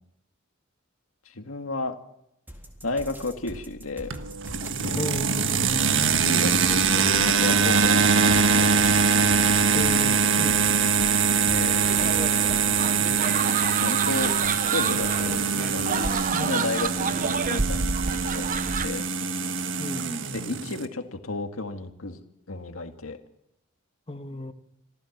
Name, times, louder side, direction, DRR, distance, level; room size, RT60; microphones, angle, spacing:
voice 1, 1.3-2.0 2.8-4.1 4.8-5.2 6.2-8.7 11.5-11.8 13.8-14.3 14.7-18.5 18.8-19.0 20.3-22.2 22.5-23.2, left 3 dB, 80° left, 6 dB, 1.9 m, -33 dB
sound 1, 2.5-13.1, equal, 10° right, 3.7 m, -43 dB
sound 2, 4.1-20.9, right 5 dB, 65° right, 1.5 m, -23 dB
voice 2, 5.0-5.5 9.7-10.7 16.3-16.6 19.8-20.3 24.1-24.5, left 1 dB, 30° left, 9 dB, 1.4 m, -34 dB
sound 3, 11.8-18.9, right 5 dB, 40° right, 0.9 m, -29 dB
27.0 x 15.0 x 7.3 m, 0.82 s
head